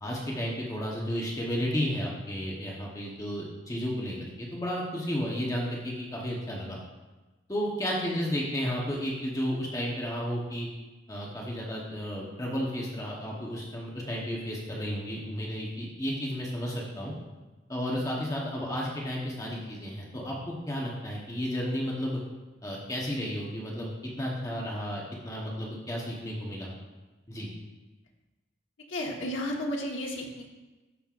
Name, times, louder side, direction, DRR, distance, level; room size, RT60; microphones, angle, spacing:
voice 1, 0.0-6.8 7.5-10.7 11.1-17.1 17.7-22.2 22.6-23.9 24.2-26.7 27.3-27.5, equal, 15° left, -3 dB, 1.0 m, -32 dB
voice 2, 28.9-30.5, left 1 dB, 85° left, 0 dB, 1.3 m, -33 dB
13.0 x 5.4 x 2.5 m, 1.2 s
head